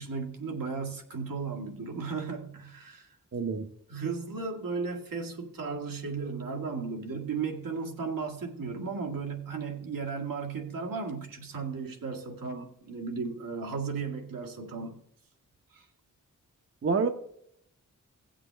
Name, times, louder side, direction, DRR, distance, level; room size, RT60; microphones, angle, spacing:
voice 1, 0.0-3.1 3.9-15.0 15.7-15.9, right 5 dB, 85° right, 2 dB, 2.0 m, -35 dB
voice 2, 3.3-3.7 16.8-17.1, right 4 dB, 40° right, 6 dB, 0.9 m, -27 dB
16.5 x 7.6 x 3.4 m, 0.71 s
wide cardioid pair, 110°, 33 cm